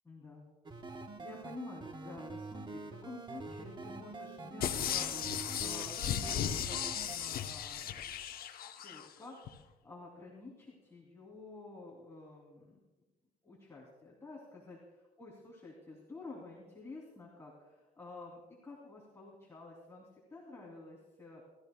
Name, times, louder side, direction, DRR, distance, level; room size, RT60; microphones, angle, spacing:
voice 1, 0.0-0.5 0.9-5.1 5.6-7.9 8.7-9.4 9.8-12.8 13.4-14.8 15.2-21.4, left 2 dB, 15° left, -3 dB, 3.0 m, -50 dB
sound 1, 0.7-7.2, right 3 dB, 25° right, 1.2 m, -45 dB
sound 2, 4.6-9.0 9.5-9.6, left 9 dB, 60° left, 0.9 m, -36 dB
28.0 x 14.0 x 2.3 m, 1.1 s
cardioid pair, 125°, 17 cm